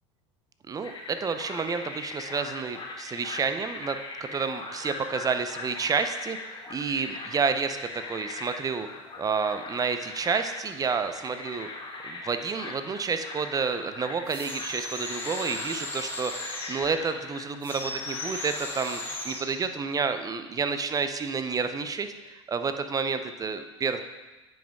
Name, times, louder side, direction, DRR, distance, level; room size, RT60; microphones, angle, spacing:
voice 1, 0.7-6.4 6.7-8.9 9.2-11.7 12.0-24.0, right 5 dB, 25° right, 9 dB, 0.6 m, -30 dB
sound 1, 0.8-19.1, left 3 dB, 30° left, 1.5 m, -41 dB
sound 2, 14.3-16.9 17.6-19.5, left 1 dB, 15° left, 1.9 m, -36 dB
9.1 x 5.1 x 3.5 m, 1.2 s
hypercardioid pair, 85°, 15 cm